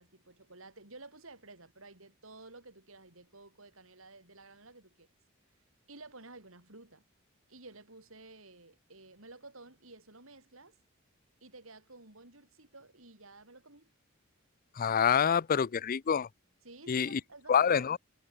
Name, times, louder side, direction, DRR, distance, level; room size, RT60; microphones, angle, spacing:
voice 1, 0.0-5.1 5.9-7.0 7.5-10.8 11.4-13.9 16.6-17.7, right 2 dB, 75° right, 7.1 m, -53 dB
voice 2, 14.8-16.3 16.9-17.2 17.5-18.0, left 7 dB, 45° left, 0.4 m, -26 dB
head